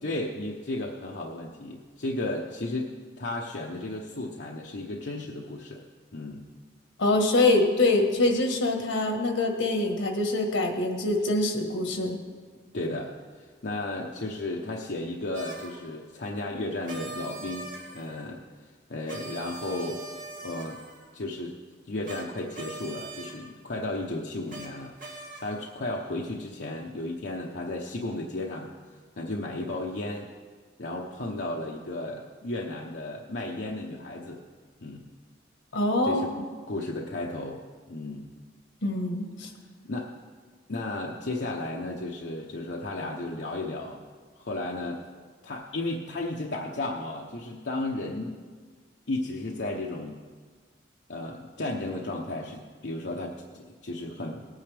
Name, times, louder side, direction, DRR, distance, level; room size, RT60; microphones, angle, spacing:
voice 1, 0.0-5.8 6.1-6.4 12.7-18.4 18.9-20.1 20.4-20.8 21.1-21.6 21.9-28.7 29.2-30.3 30.8-34.4 34.8-35.1 36.1-36.3 36.7-37.6 37.9-38.3 39.8-40.1 40.7-44.0 44.4-45.0 45.4-48.4 49.1-50.2 51.1-54.5, left 2 dB, 65° left, -1 dB, 0.8 m, -34 dB
voice 2, 7.0-12.2 35.7-36.2 38.8-39.5, left 2 dB, 80° left, 4 dB, 1.5 m, -24 dB
sound 1, 15.3-15.8 16.8-18.3 19.1-21.1 22.0-22.2 22.5-23.3 24.5-24.7 25.0-25.6, right 2 dB, 45° right, 2.4 m, -41 dB
18.5 x 9.3 x 3.4 m, 1.6 s
head